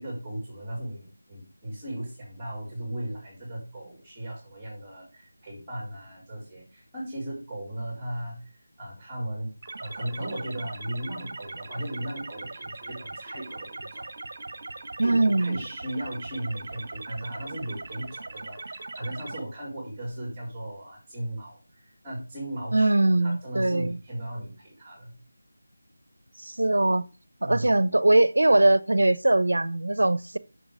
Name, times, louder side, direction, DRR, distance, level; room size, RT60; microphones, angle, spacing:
voice 1, 0.0-14.0 15.0-25.2 27.4-27.7, right 1 dB, 10° right, 3.8 m, -37 dB
sound 1, 9.6-19.4, right 3 dB, 40° right, 1.5 m, -40 dB
voice 2, 15.0-15.6 22.7-24.0 26.4-27.0 27.4-30.4, right 2 dB, 65° right, 0.8 m, -21 dB
8.8 x 6.9 x 4.9 m
figure-of-eight pair, 165°, 0 cm